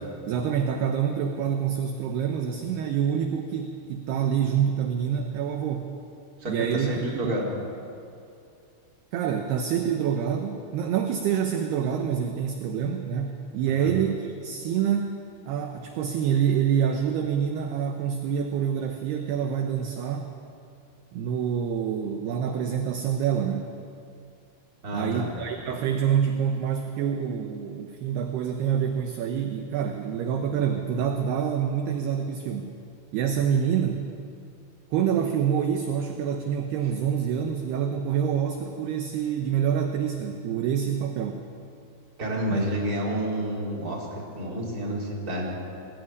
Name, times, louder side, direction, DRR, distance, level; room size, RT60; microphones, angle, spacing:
voice 1, 0.3-5.9 6.5-7.3 9.1-15.2 15.5-20.3 21.1-23.6 24.9-32.7 33.1-34.0 34.9-41.4 42.5-42.7, right 8 dB, 70° right, 4 dB, 2.6 m, -26 dB
voice 2, 6.4-7.5 13.8-13.9 24.8-25.3 42.2-45.5, equal, 20° right, -3 dB, 4.0 m, -29 dB
22.0 x 15.5 x 9.6 m, 2.5 s
omnidirectional pair, 5.8 m